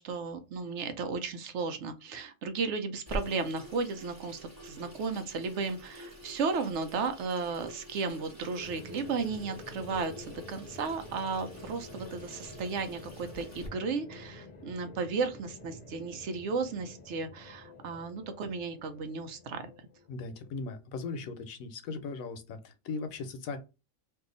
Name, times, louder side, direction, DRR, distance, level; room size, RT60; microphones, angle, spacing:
voice 1, 0.0-19.7, right 4 dB, 65° right, 8 dB, 0.8 m, -34 dB
Water tap faucet / Sink (filling or washing), 3.1-13.7, equal, 15° right, 1.0 m, -47 dB
sound 1, 8.6-20.6, left 3 dB, 35° left, 0.9 m, -49 dB
voice 2, 20.1-23.6, left 4 dB, 85° left, 9 dB, 1.1 m, -38 dB
2.7 x 2.4 x 3.7 m, 0.29 s
omnidirectional pair, 1.4 m